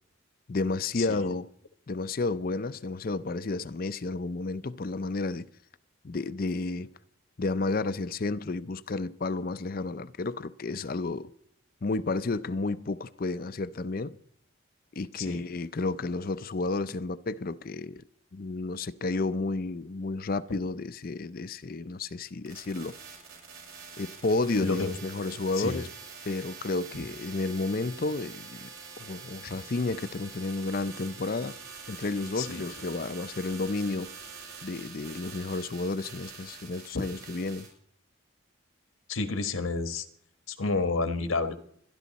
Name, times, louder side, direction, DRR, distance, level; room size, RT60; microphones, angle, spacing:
voice 1, 0.5-1.5 1.9-5.5 6.0-6.9 7.4-11.3 11.8-14.2 14.9-18.0 18.3-23.0 24.0-25.9 26.2-28.7 29.0-31.6 31.9-34.1 34.6-37.7, left 3 dB, 45° left, 0.5 m, -31 dB
sound 1, 22.5-37.7, right 5 dB, 85° right, 6.5 m, -45 dB
voice 2, 32.4-32.7 39.1-40.1 40.5-41.6, left 3 dB, 80° left, 1.3 m, -30 dB
25.0 x 11.5 x 4.1 m
head